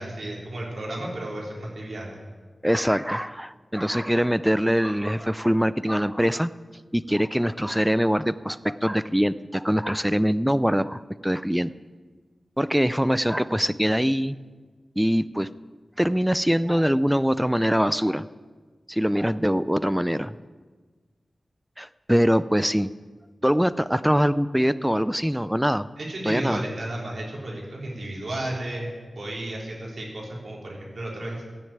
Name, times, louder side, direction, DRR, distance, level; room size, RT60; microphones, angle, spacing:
voice 1, 0.0-2.2 26.0-31.4, right 1 dB, 70° right, -3 dB, 3.7 m, -33 dB
voice 2, 2.6-6.5 6.9-11.7 12.6-14.4 15.0-15.5 16.0-18.3 18.9-20.3 21.8-22.9 23.4-25.9 26.2-26.6, equal, 5° right, 15 dB, 0.4 m, -23 dB
14.0 x 6.6 x 8.7 m, 1.4 s
wide cardioid pair, 60°, 0 cm